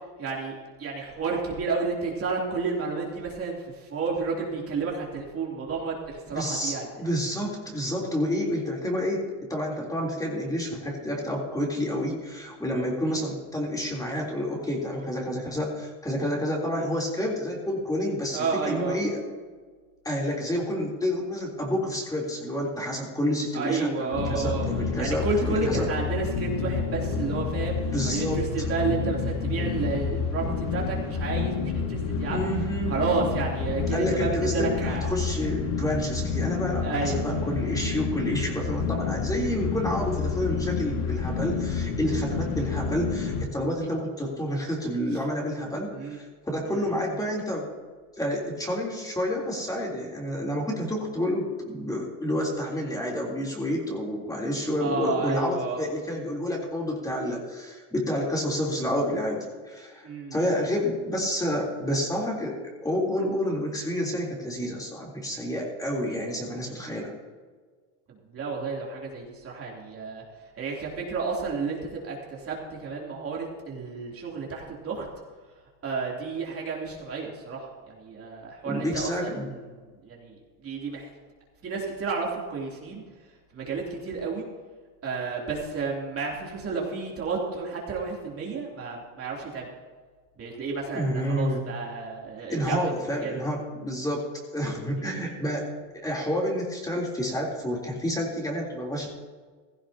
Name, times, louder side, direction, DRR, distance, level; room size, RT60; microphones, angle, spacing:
voice 1, 0.2-6.9 18.3-19.0 23.5-24.7 25.0-32.4 32.9-35.1 36.8-37.2 45.9-46.2 46.7-46.9 54.8-55.8 60.0-60.4 68.3-70.2 70.6-75.1 75.8-79.8 80.0-81.1 81.6-83.0 83.5-84.4 85.0-89.7 90.4-93.4 95.0-95.2, right 4 dB, 35° right, -2 dB, 3.2 m, -31 dB
voice 2, 6.3-9.2 9.5-19.2 20.0-25.9 27.9-28.7 32.3-32.9 33.9-47.7 48.2-67.1 78.7-79.5 90.9-91.6 92.5-94.3 94.5-95.7 96.0-99.1, equal, 10° left, -3 dB, 3.5 m, -29 dB
sound 1, 24.1-43.5, left 5 dB, 85° left, 2.3 m, -29 dB
16.0 x 15.5 x 2.9 m, 1.5 s
supercardioid pair, 120°, 37 cm